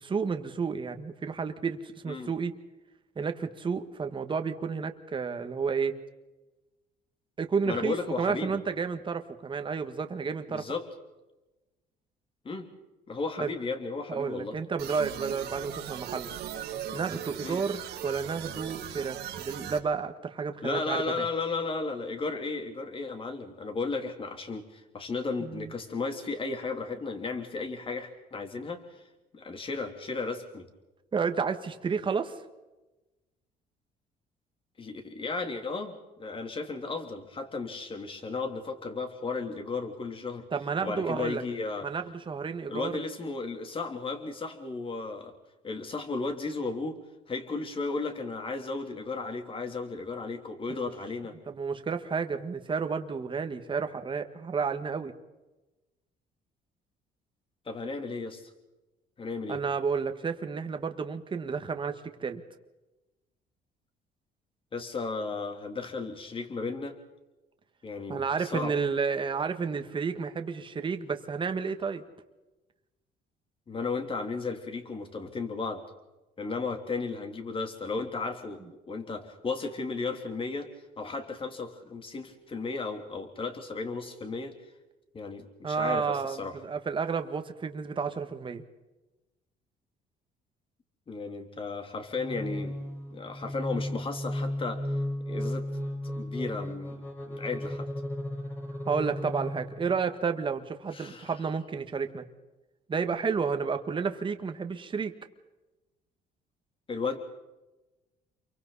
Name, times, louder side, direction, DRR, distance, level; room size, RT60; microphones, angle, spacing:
voice 1, 0.0-2.5 3.2-5.9 7.4-10.6 13.4-13.5 14.1-16.3 16.9-21.3 25.4-25.7 31.1-32.3 40.5-41.4 41.8-42.9 50.7-50.9 51.5-55.1 59.5-62.4 68.1-72.0 85.6-88.6 98.9-102.2 102.9-105.1, right 5 dB, 30° right, 7 dB, 1.8 m, -31 dB
voice 2, 7.7-8.6 10.5-10.9 12.5-12.7 13.1-14.5 17.4-17.6 20.6-28.8 29.3-30.7 34.8-40.4 40.8-41.9 42.7-45.3 45.6-47.0 47.3-51.4 57.7-58.5 59.2-59.6 64.7-67.0 67.8-68.7 73.7-75.8 76.4-80.7 81.0-84.5 85.1-86.6 91.1-92.8 93.1-94.9 95.3-95.7 96.0-97.9 100.9-101.3 106.9-107.2, left 3 dB, 30° left, 5 dB, 3.4 m, -34 dB
sound 1, 14.8-19.8, right 10 dB, 80° right, 2.6 m, -39 dB
sound 2, 92.1-100.1, left 1 dB, 10° left, 4.3 m, -35 dB
29.0 x 23.5 x 4.2 m, 1.1 s
cardioid pair, 110°, 17 cm